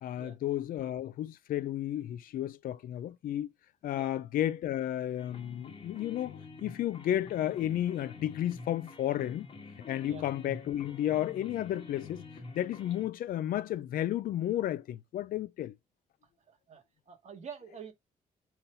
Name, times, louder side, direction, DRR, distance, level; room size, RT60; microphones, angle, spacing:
voice 1, 0.0-3.5 3.8-9.5 9.9-12.2 12.6-15.7, left 12 dB, 70° left, 0.4 m, -32 dB
sound 1, 5.2-13.1, left 4 dB, 40° left, 2.4 m, -48 dB
voice 2, 16.5-17.9, right 7 dB, 50° right, 2.1 m, -47 dB
6.9 x 5.7 x 2.7 m
cardioid pair, 150°, 15 cm